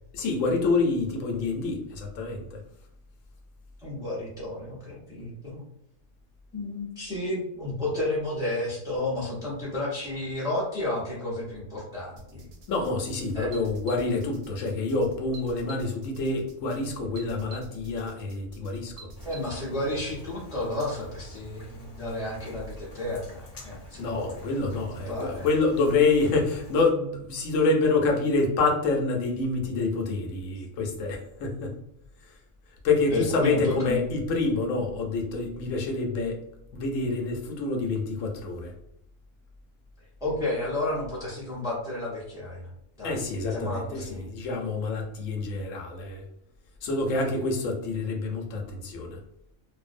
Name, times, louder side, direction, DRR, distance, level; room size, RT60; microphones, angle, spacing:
voice 1, 0.1-2.6 12.7-19.1 23.9-31.7 32.8-36.4 36.7-38.7 43.0-46.2 46.8-49.2, left 3 dB, 80° left, 2 dB, 1.0 m, -27 dB
voice 2, 3.8-5.6 6.5-12.5 13.3-13.5 19.2-24.4 25.1-25.5 33.1-34.0 40.2-42.7 43.0-43.2 43.5-44.3, left 1 dB, 5° right, -6 dB, 0.5 m, -32 dB
sound 1, 12.2-19.4, right 2 dB, 65° right, 0.7 m, -48 dB
Rain, 19.1-26.9, left 1 dB, 55° left, 0.4 m, -47 dB
2.5 x 2.0 x 2.4 m, 0.76 s
omnidirectional pair, 1.3 m